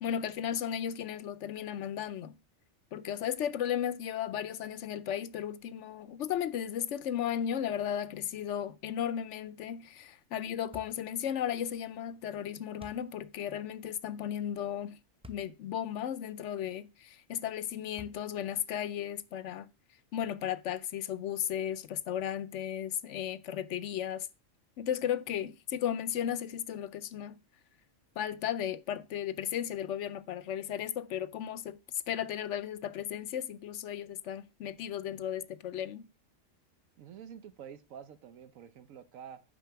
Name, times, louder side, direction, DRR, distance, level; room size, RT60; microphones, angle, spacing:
voice 1, 0.0-2.4 2.9-15.0 15.3-19.7 20.1-24.3 24.8-27.4 28.2-36.1, left 10 dB, 70° left, 0.9 m, -35 dB
sound 1, 10.7-11.1 12.8-13.1 15.2-15.5 16.1-16.2 18.0-18.5, left 2 dB, 10° right, 0.4 m, -51 dB
voice 2, 37.0-39.4, right 8 dB, 85° right, 1.2 m, -48 dB
9.3 x 4.3 x 5.7 m
omnidirectional pair, 1.4 m